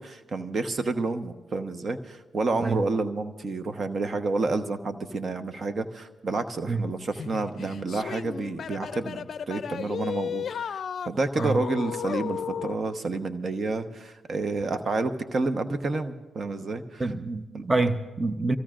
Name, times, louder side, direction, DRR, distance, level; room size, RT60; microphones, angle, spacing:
voice 1, 0.0-17.1 17.5-17.6, right 3 dB, 50° right, 8 dB, 1.1 m, -29 dB
sound 1, 7.1-12.8, left 8 dB, 65° left, 0.4 m, -34 dB
voice 2, 17.0-18.6, right 3 dB, 25° right, 8 dB, 0.9 m, -26 dB
26.5 x 16.5 x 2.5 m, 1.2 s
supercardioid pair, 55°, 0 cm